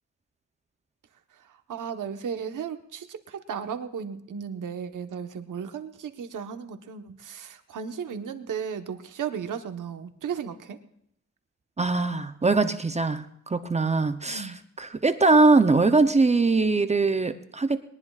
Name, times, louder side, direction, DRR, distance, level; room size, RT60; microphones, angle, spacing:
voice 1, 1.5-10.8 14.3-14.6, right 7 dB, 85° right, 7 dB, 1.2 m, -35 dB
voice 2, 11.8-17.8, right 3 dB, 20° right, 9 dB, 0.7 m, -22 dB
21.0 x 19.5 x 2.4 m, 0.73 s
wide cardioid pair, 125°, 30 cm